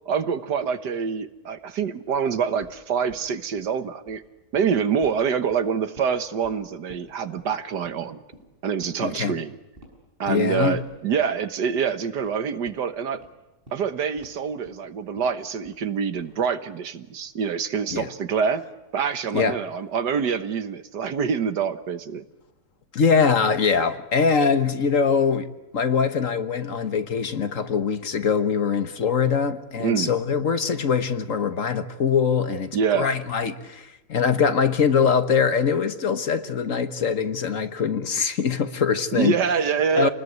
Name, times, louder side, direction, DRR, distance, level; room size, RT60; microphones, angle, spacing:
voice 1, 0.1-4.2 4.5-8.2 8.6-9.6 10.2-13.2 13.7-18.6 18.9-22.3 29.8-30.1 32.7-33.1 39.1-40.1, right 6 dB, 80° right, 1.9 m, -26 dB
sound 1, 2.1-2.2 2.6-2.7 3.1-3.3 3.6-3.7 4.0-4.2 4.5-4.7 5.0-5.2 5.5-6.1 6.4-6.6 6.9-7.0 7.4-7.5 7.8-8.0 8.3-8.4 8.8-8.9 9.3-9.4 9.8-9.9 10.2-10.4 10.7-10.9 11.2-11.4 11.7-11.8 12.2-12.3 12.7-12.8 13.1-13.3 13.7-13.8 14.2-14.3 14.6-14.8 15.2-15.3 15.6-15.9 16.1-16.5, right 1 dB, 30° right, 7.3 m, -47 dB
voice 2, 9.0-9.3 10.3-10.8 17.9-18.1 19.3-19.6 22.9-39.3 40.0-40.1, left 6 dB, 55° left, 1.5 m, -23 dB
28.5 x 20.0 x 9.4 m
omnidirectional pair, 1.8 m